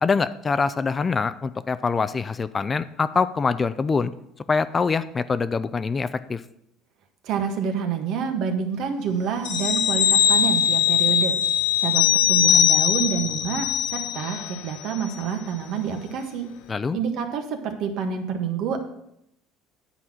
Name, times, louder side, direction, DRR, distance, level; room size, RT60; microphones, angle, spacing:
voice 1, 0.0-4.1 4.5-6.4 16.7-17.0, left 4 dB, 25° left, 14 dB, 0.4 m, -24 dB
voice 2, 7.2-11.4 11.8-16.5 16.9-18.8, right 7 dB, 60° right, 6 dB, 1.5 m, -27 dB
sound 1, 9.4-14.6 14.9-15.0, left 9 dB, 75° left, 0.6 m, -21 dB
9.8 x 4.2 x 7.5 m, 0.77 s
cardioid pair, 115°, 0 cm